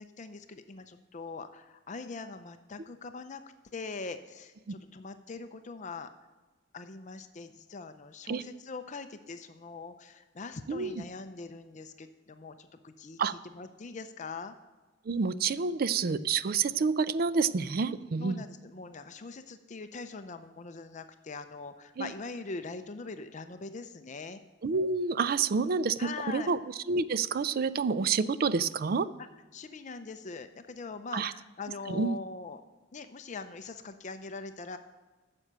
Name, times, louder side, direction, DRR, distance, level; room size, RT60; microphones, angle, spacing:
voice 1, 0.0-3.4 3.7-6.1 6.7-14.5 18.2-24.4 26.0-26.5 29.2-32.6 32.9-34.8, left 4 dB, 40° left, 9 dB, 0.5 m, -42 dB
voice 2, 15.1-18.4 22.0-22.1 24.6-26.0 26.3-26.6 26.9-29.1 31.1-31.3 31.9-32.2, right 5 dB, 50° right, 16 dB, 0.4 m, -28 dB
9.8 x 6.7 x 7.4 m, 1.3 s
head